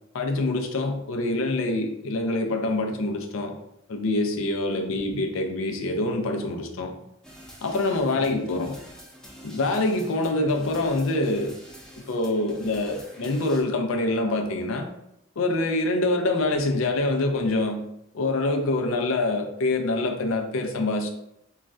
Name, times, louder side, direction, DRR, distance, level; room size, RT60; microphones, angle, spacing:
voice 1, 0.1-3.5 3.9-7.0 7.6-8.8 9.4-11.6 12.0-14.9 15.4-17.9 18.1-21.1, left 2 dB, 90° left, 4 dB, 0.5 m, -25 dB
sound 1, 7.2-13.6, equal, 5° left, 0.4 m, -47 dB
3.1 x 2.3 x 2.5 m, 0.78 s
head